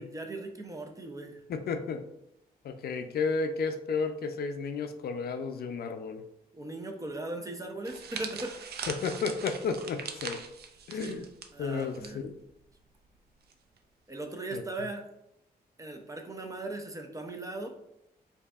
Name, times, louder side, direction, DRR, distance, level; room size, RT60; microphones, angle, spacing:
voice 1, 0.0-1.4 6.5-8.6 11.0-12.2 14.1-15.0 15.8-17.7, right 2 dB, 20° right, 3 dB, 0.5 m, -38 dB
voice 2, 1.5-2.0 2.6-6.2 8.9-10.4 10.9-11.2 11.6-12.3 14.5-14.6, left 5 dB, 70° left, 7 dB, 0.4 m, -32 dB
sound 1, 7.8-12.1 12.4-12.6 13.5-13.8, right 6 dB, 75° right, 0.4 m, -41 dB
4.5 x 2.7 x 2.3 m, 0.80 s
wide cardioid pair, 120°, 17 cm